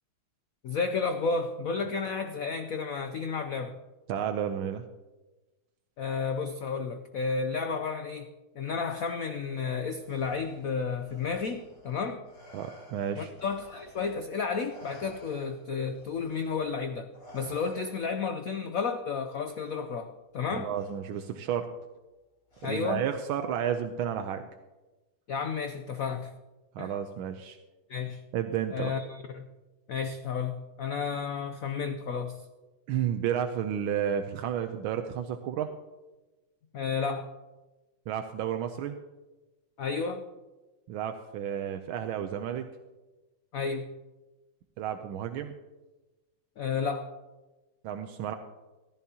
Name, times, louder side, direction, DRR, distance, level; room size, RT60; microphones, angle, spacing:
voice 1, 0.6-3.7 6.0-8.3 8.6-12.2 13.2-17.1 17.3-20.7 22.6-23.1 25.3-26.3 26.8-26.9 27.9-28.2 28.7-29.5 29.9-32.4 36.7-37.3 39.8-40.2 43.5-43.9 46.6-47.1, left 5 dB, 75° left, 7 dB, 0.7 m, -32 dB
voice 2, 4.1-4.8 12.5-13.3 20.5-21.7 22.6-24.5 26.7-27.6 28.3-28.9 32.9-35.7 38.1-39.0 40.9-42.7 44.8-45.6 47.8-48.4, right 9 dB, 80° right, 6 dB, 1.4 m, -32 dB
Respiratory sounds, 10.0-14.3 14.7-18.3 19.6-19.8 20.7-21.3 22.5-23.1, equal, 60° left, 4.2 m, -54 dB
14.5 x 14.0 x 2.9 m, 1.1 s
omnidirectional pair, 2.3 m